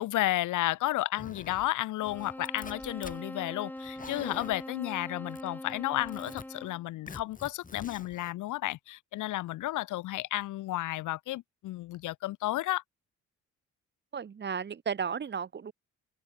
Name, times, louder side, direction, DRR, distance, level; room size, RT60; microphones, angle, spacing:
voice 1, 0.0-12.8, left 16 dB, 80° left, 0.9 m, -32 dB
Zipper (clothing), 1.2-1.7 2.0-3.2 3.8-4.6 5.3-5.7 6.0-6.4 7.1-8.3, left 4 dB, 25° left, 5.1 m, -46 dB
sound 1, 2.0-6.9, left 1 dB, 5° left, 3.3 m, -42 dB
voice 2, 14.1-15.7, right 6 dB, 35° right, 1.1 m, -34 dB
cardioid pair, 90°, 30 cm